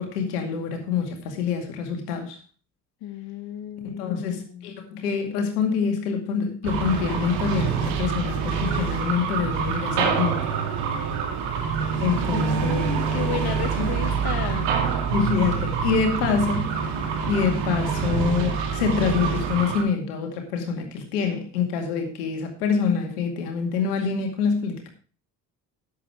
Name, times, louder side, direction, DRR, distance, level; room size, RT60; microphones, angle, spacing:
voice 1, 0.0-2.4 3.8-10.5 12.0-12.8 13.8-13.9 15.1-16.8 17.3-24.9, left 6 dB, 75° left, 4 dB, 2.3 m, -26 dB
voice 2, 3.0-4.7 12.3-14.7, left 10 dB, 50° left, 8 dB, 1.1 m, -33 dB
sound 1, 6.6-19.8, right 6 dB, 60° right, 2.3 m, -26 dB
11.0 x 8.1 x 4.5 m, 0.38 s
figure-of-eight pair, 55°, 47 cm